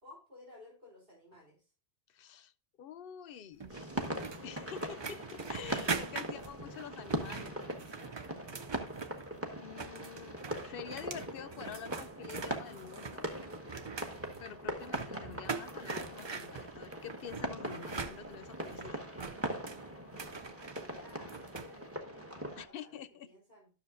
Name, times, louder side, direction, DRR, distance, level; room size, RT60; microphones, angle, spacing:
voice 1, 0.0-1.7 20.8-23.7, left 2 dB, 60° right, 3.9 m, -56 dB
voice 2, 2.1-2.5 2.8-3.9 4.4-7.6 9.6-13.3 14.4-19.0 22.6-23.3, left 9 dB, 65° left, 0.8 m, -47 dB
sound 1, 3.6-9.4 9.7-21.7, right 5 dB, 40° right, 0.4 m, -43 dB
sound 2, 3.7-22.7, right 1 dB, 15° right, 1.1 m, -41 dB
sound 3, 11.1-11.5 13.7-14.0 15.5-15.6 15.9-16.1, right 5 dB, 85° right, 1.2 m, -50 dB
12.5 x 6.6 x 2.5 m
omnidirectional pair, 1.0 m